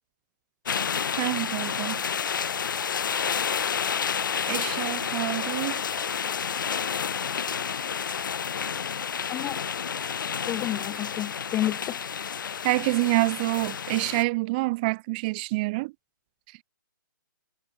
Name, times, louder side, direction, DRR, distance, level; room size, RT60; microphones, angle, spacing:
sound 1, 0.7-14.2, left 7 dB, 65° left, 1.8 m, -30 dB
voice 1, 1.2-2.0 4.5-5.8 12.6-15.9, right 24 dB, 25° right, 0.7 m, -27 dB
voice 2, 9.3-9.6 10.5-12.0, left 14 dB, 15° left, 0.5 m, -30 dB
hypercardioid pair, 160°, 11 cm